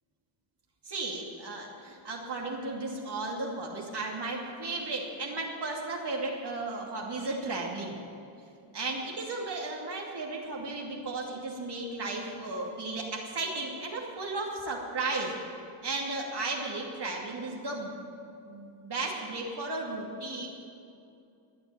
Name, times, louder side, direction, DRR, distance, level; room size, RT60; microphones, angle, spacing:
voice 1, 0.8-8.0 8.7-15.3 15.8-17.9 18.4-20.5, right 2 dB, 50° right, -2 dB, 2.6 m, -35 dB
20.5 x 7.2 x 8.7 m, 2.6 s
cardioid pair, 75°, 49 cm